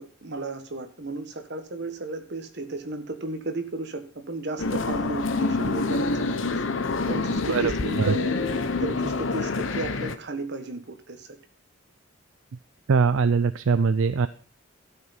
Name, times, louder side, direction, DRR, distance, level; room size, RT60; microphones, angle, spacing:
voice 1, 0.0-6.3 6.5-6.6 7.1-11.4, right 2 dB, 55° right, 7 dB, 1.4 m, -34 dB
sound 1, 4.6-10.2, left 3 dB, 65° left, 0.8 m, -27 dB
voice 2, 12.9-14.3, right 5 dB, 70° right, 12 dB, 0.5 m, -21 dB
12.5 x 5.9 x 5.8 m, 0.42 s
head